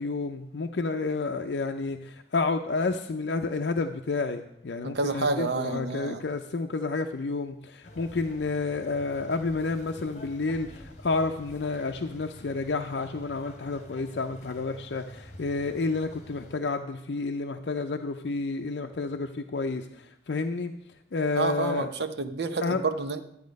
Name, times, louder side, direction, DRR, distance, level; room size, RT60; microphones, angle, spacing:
voice 1, 0.0-20.7 21.1-21.9 22.6-22.8, left 3 dB, 70° left, 5 dB, 0.5 m, -30 dB
voice 2, 4.8-6.2 21.4-23.2, right 3 dB, 70° right, 9 dB, 0.8 m, -29 dB
sound 1, 7.8-16.6, left 1 dB, 40° left, 1.7 m, -48 dB
11.5 x 8.4 x 5.2 m, 0.81 s
head